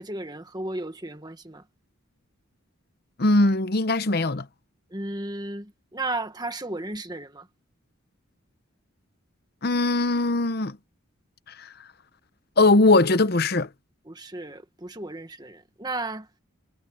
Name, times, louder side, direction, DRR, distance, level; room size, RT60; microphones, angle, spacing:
voice 1, 0.0-1.6 4.9-7.5 14.0-16.3, right 2 dB, 20° right, 1.5 m, -34 dB
voice 2, 3.2-4.5 9.6-10.8 11.6-11.7 12.6-13.7, left 2 dB, 45° left, 0.8 m, -20 dB
head